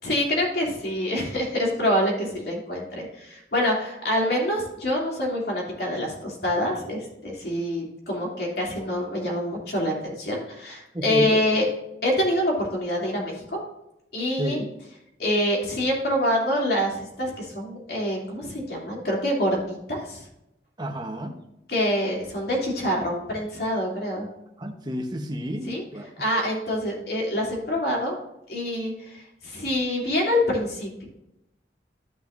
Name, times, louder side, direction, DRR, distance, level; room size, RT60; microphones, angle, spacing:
voice 1, 0.0-11.7 12.0-13.6 14.1-14.6 15.2-20.2 21.7-24.3 25.6-25.8 26.2-28.2 28.5-31.1, left 1 dB, 60° left, -2 dB, 2.9 m, -26 dB
voice 2, 10.9-11.3 14.4-14.7 20.8-21.4 24.6-26.1, equal, 25° right, 3 dB, 1.1 m, -31 dB
13.5 x 5.8 x 2.6 m, 0.86 s
head